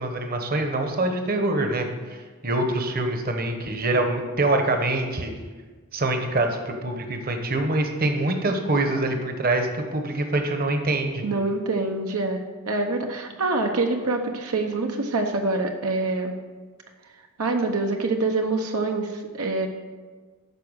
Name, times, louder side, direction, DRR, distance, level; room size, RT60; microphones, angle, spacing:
voice 1, 0.0-5.3 5.9-11.2, right 2 dB, 45° right, 5 dB, 1.1 m, -25 dB
voice 2, 11.2-16.4 17.4-19.7, right 3 dB, 75° right, 3 dB, 0.9 m, -25 dB
12.5 x 4.7 x 6.4 m, 1.4 s
head